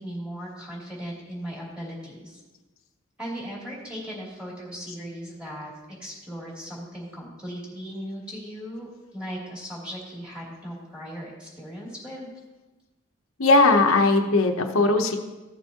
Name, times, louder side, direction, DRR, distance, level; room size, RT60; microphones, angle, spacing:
voice 1, 0.0-2.4 3.2-5.7 6.0-12.3, equal, 5° right, -6 dB, 2.9 m, -37 dB
voice 2, 13.4-15.2, left 3 dB, 85° left, 3 dB, 0.9 m, -19 dB
15.5 x 7.0 x 2.9 m, 1.1 s
head